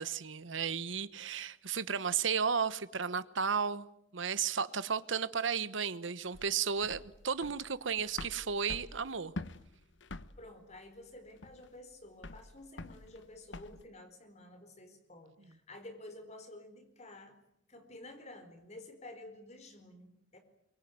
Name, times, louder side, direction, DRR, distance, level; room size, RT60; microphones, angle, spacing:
voice 1, 0.0-3.9 4.1-9.3, right 6 dB, 80° right, 1.1 m, -34 dB
sound 1, 6.3-13.8, left 2 dB, 70° left, 1.1 m, -46 dB
voice 2, 10.4-17.4 17.7-20.4, left 1 dB, 35° left, 4.4 m, -51 dB
24.0 x 23.5 x 9.5 m
head